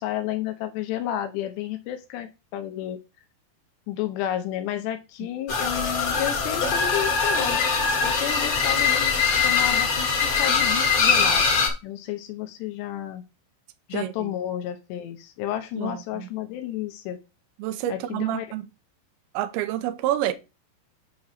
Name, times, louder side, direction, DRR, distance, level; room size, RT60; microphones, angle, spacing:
voice 1, 0.0-3.0 3.9-7.6 8.0-9.1 9.4-11.5 11.8-13.2 13.9-17.2 17.9-18.5, left 11 dB, 80° left, 2.9 m, -31 dB
sound 1, 5.5-11.7, left 5 dB, 55° left, 1.5 m, -22 dB
voice 2, 13.9-14.3 15.7-16.3 17.6-18.7 19.3-20.3, right 13 dB, 80° right, 2.3 m, -28 dB
8.4 x 3.1 x 6.5 m
omnidirectional pair, 5.3 m